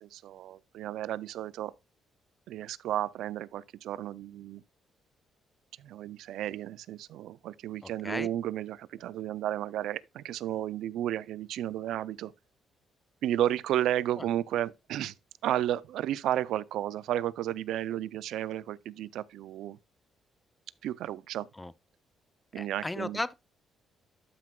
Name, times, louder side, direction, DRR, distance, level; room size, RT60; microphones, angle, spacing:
voice 1, 0.0-1.7 2.5-4.6 5.8-12.3 13.2-15.1 15.4-19.8 20.8-21.5 22.5-23.2, right 12 dB, 85° right, 0.4 m, -33 dB
voice 2, 7.8-8.3 14.2-14.3 21.5-21.7 22.6-23.3, left 2 dB, 15° left, 0.5 m, -35 dB
12.0 x 5.8 x 2.2 m
cardioid pair, 90°, 0 cm